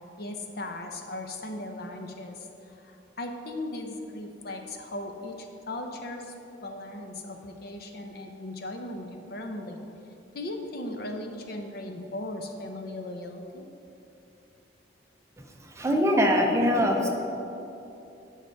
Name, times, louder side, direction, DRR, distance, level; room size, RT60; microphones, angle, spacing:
voice 1, 0.2-6.3 6.6-9.8 10.3-13.6, left 1 dB, 55° left, 4 dB, 0.7 m, -37 dB
voice 2, 15.6-17.1, equal, 15° right, 1 dB, 0.7 m, -23 dB
9.5 x 5.8 x 4.6 m, 2.9 s
head